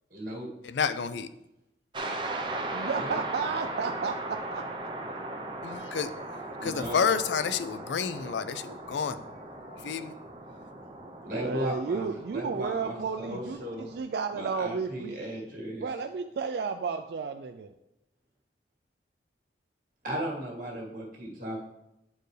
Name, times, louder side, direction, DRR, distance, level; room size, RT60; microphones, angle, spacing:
voice 1, 0.1-0.5 3.0-3.2 6.6-7.0 11.2-13.9 14.3-15.8 20.0-21.6, equal, 50° right, 1.9 m, -36 dB
voice 2, 0.6-1.3 5.6-6.1 6.6-9.2 9.5-10.1, left 6 dB, 80° left, 0.4 m, -30 dB
sound 1, 1.9-14.0, right 2 dB, 25° right, 0.6 m, -38 dB
voice 3, 2.7-4.6 11.0-15.2 15.8-17.7, right 5 dB, 65° right, 0.3 m, -33 dB
9.4 x 4.5 x 3.2 m
head